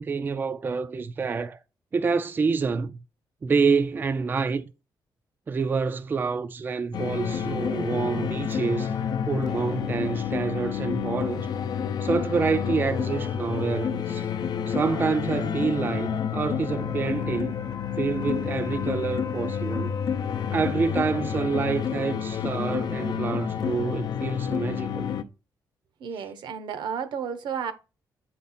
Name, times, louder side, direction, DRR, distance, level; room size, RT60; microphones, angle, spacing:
voice 1, 0.0-1.6 1.9-3.0 3.4-4.7 5.5-8.9 9.3-11.5 12.0-14.3 14.7-17.5 18.0-19.9 20.5-25.1 26.2-26.3, right 5 dB, 25° right, 0.3 m, -27 dB
sound 1, 6.9-25.2, left 8 dB, 60° left, 0.5 m, -29 dB
voice 2, 26.0-27.7, right 7 dB, 80° right, 0.9 m, -32 dB
8.3 x 4.3 x 4.2 m
cardioid pair, 145°, 8 cm